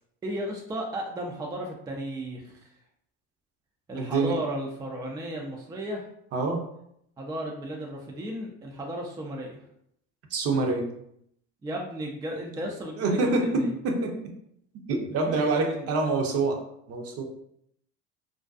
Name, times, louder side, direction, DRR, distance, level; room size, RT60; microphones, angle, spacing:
voice 1, 0.2-2.7 3.9-6.1 7.2-9.6 11.6-13.7 15.2-16.0, right 1 dB, 10° right, 0 dB, 0.3 m, -34 dB
voice 2, 3.9-4.4 6.3-6.6 10.3-10.9 13.0-14.1 14.9-16.6 16.9-17.2, right 3 dB, 45° right, 2 dB, 0.7 m, -26 dB
2.5 x 2.2 x 2.3 m, 0.73 s
hypercardioid pair, 75°, 34 cm